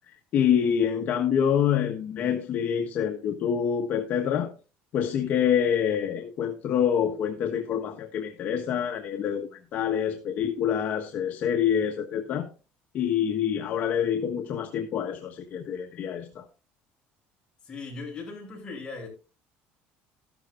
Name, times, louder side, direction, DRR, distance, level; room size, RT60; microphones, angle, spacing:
voice 1, 0.1-4.5 4.9-12.5 12.9-16.4, left 8 dB, 45° left, 1.3 m, -26 dB
voice 2, 17.6-19.1, left 3 dB, 20° left, 6.9 m, -38 dB
14.0 x 12.0 x 2.5 m
cardioid pair, 170°, 4 cm